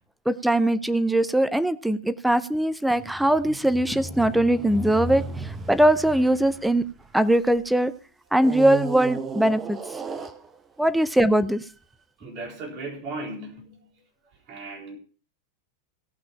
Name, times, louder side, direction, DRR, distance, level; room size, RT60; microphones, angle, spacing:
voice 1, 0.3-6.8 7.1-7.9 8.3-9.8 10.8-11.6, right 1 dB, 5° right, 14 dB, 0.6 m, -21 dB
sound 1, 2.9-7.6 8.4-10.9 11.6-11.7, right 2 dB, 20° right, 1.1 m, -35 dB
voice 2, 12.2-13.9 14.5-15.0, right 2 dB, 40° right, 0 dB, 4.1 m, -36 dB
17.5 x 6.0 x 5.7 m, 0.41 s
figure-of-eight pair, 90°, 0 cm